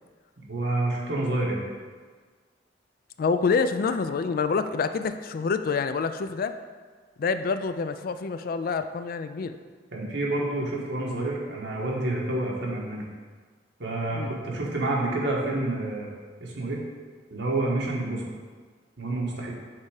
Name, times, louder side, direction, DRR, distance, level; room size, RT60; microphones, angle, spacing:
voice 1, 0.5-1.6 9.9-13.1 13.8-16.1 16.4-16.8 17.3-18.3 19.0-19.5, right 2 dB, 75° right, -3 dB, 1.4 m, -28 dB
voice 2, 3.2-6.5 7.2-9.6 14.1-14.3, left 5 dB, 55° left, 10 dB, 0.3 m, -27 dB
6.5 x 3.6 x 4.9 m, 1.5 s
head